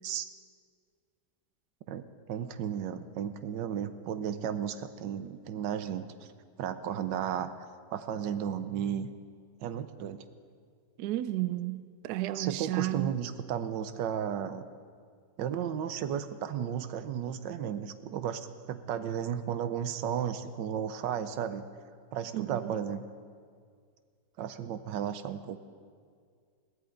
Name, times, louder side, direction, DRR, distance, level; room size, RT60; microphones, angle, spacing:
voice 1, 1.9-6.3 6.6-7.5 7.9-9.1 9.6-10.2 12.3-14.6 15.4-18.4 18.7-21.6 22.1-23.0 24.4-25.6, right 9 dB, 85° right, 11 dB, 1.4 m, -34 dB
voice 2, 11.0-13.2 22.3-22.8, right 15 dB, 70° right, 13 dB, 1.1 m, -32 dB
22.0 x 15.5 x 3.8 m, 2.1 s
omnidirectional pair, 1.9 m